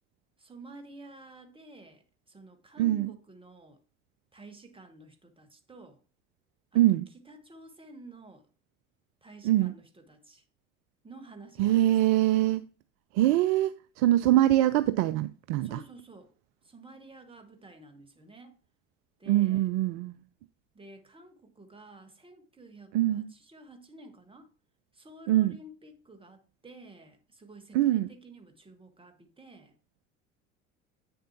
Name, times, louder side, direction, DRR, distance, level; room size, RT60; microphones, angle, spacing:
voice 1, 0.4-3.8 4.3-6.0 6.7-8.5 9.2-10.4 11.0-11.9 15.6-16.3 16.6-18.6 19.2-19.7 20.7-24.5 24.9-29.7, right 2 dB, 15° right, 1.6 m, -51 dB
voice 2, 2.8-3.1 6.7-7.1 9.4-9.7 11.6-12.6 13.1-15.8 19.3-20.2 22.9-23.3 25.3-25.6 27.7-28.1, right 14 dB, 50° right, 0.5 m, -24 dB
8.7 x 6.7 x 2.9 m
figure-of-eight pair, 65°, 40 cm